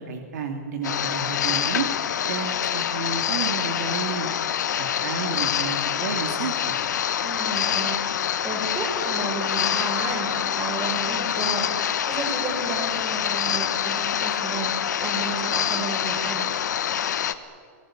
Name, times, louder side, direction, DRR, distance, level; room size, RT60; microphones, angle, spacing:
voice 1, 0.0-1.9 2.3-4.3 4.8-6.8, right 5 dB, 70° right, 5 dB, 2.5 m, -31 dB
sound 1, 0.8-17.3, left 9 dB, 85° left, 1.4 m, -26 dB
voice 2, 7.2-8.0 8.4-14.7 15.0-16.4, right 4 dB, 25° right, 2 dB, 6.6 m, -32 dB
28.0 x 18.5 x 8.8 m, 2.1 s
hypercardioid pair, 145°, 9 cm